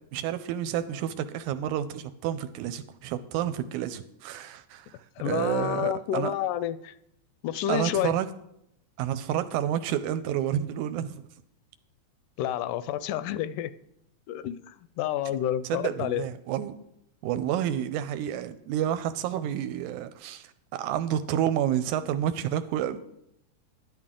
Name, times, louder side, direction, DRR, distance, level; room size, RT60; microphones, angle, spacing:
voice 1, 0.1-6.3 7.7-8.3 9.0-11.3 15.3-15.4 15.7-16.8 17.2-23.0, right 10 dB, 80° right, 12 dB, 1.9 m, -30 dB
voice 2, 5.2-6.9 7.4-8.1 12.4-13.7 14.3-16.2, left 11 dB, 85° left, 14 dB, 2.1 m, -29 dB
11.5 x 11.0 x 3.7 m, 0.78 s
omnidirectional pair, 3.6 m